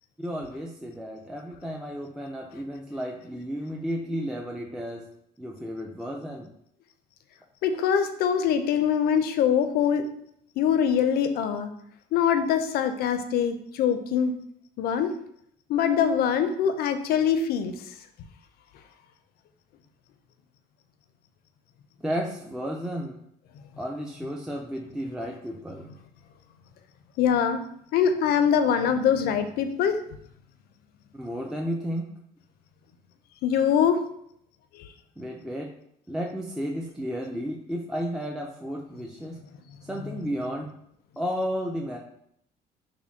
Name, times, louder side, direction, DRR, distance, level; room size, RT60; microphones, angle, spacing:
voice 1, 0.2-5.0 5.4-6.5 22.0-23.2 23.8-25.9 31.1-32.1 35.2-35.7 36.1-39.4 39.9-40.7 41.2-42.0, equal, 5° right, 0 dB, 0.3 m, -33 dB
voice 2, 7.6-10.0 10.6-11.7 12.1-14.3 14.8-15.1 15.7-17.9 27.2-27.6 27.9-30.0 33.4-34.0 34.7-34.9, left 8 dB, 65° left, 8 dB, 0.4 m, -23 dB
3.6 x 2.2 x 3.4 m, 0.71 s
cardioid pair, 110°, 17 cm